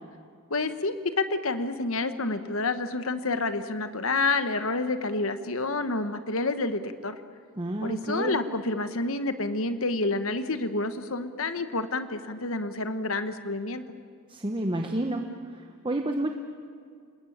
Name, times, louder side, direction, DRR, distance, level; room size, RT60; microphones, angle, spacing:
voice 1, 0.5-7.2 7.8-13.8, left 3 dB, 65° left, 10 dB, 1.3 m, -29 dB
voice 2, 7.6-8.4 14.3-16.3, right 1 dB, 25° right, 4 dB, 1.1 m, -30 dB
28.0 x 20.5 x 8.7 m, 2.2 s
head